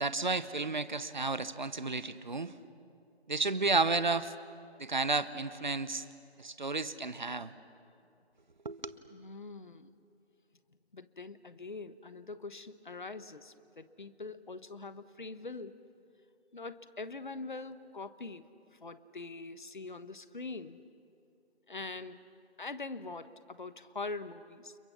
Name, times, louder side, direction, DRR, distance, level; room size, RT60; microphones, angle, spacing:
voice 1, 0.0-2.5 3.3-4.3 4.8-6.1 6.4-7.5 8.6-9.0, right 3 dB, 45° right, 15 dB, 1.0 m, -32 dB
voice 2, 9.1-9.9 10.9-15.8 16.5-20.8 21.7-22.2 22.6-24.8, left 3 dB, 50° left, 14 dB, 1.1 m, -43 dB
30.0 x 27.5 x 7.0 m, 2.5 s
figure-of-eight pair, 170°, 32 cm